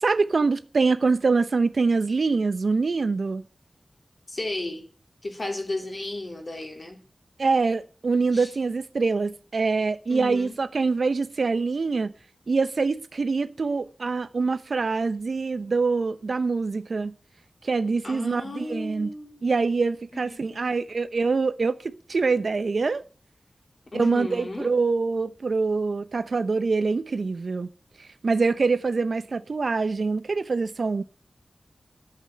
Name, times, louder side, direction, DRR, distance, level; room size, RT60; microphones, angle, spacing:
voice 1, 0.0-3.4 7.4-12.1 12.5-17.1 17.6-19.1 19.4-23.0 23.9-27.7 28.2-31.0, right 4 dB, 70° right, 0.9 m, -24 dB
voice 2, 4.3-4.9 5.2-7.0 8.3-8.5 10.1-10.6 18.0-19.4 20.1-20.8 23.9-24.7, left 2 dB, 45° left, 3.6 m, -34 dB
11.0 x 8.3 x 9.7 m
wide cardioid pair, 95°, 0 cm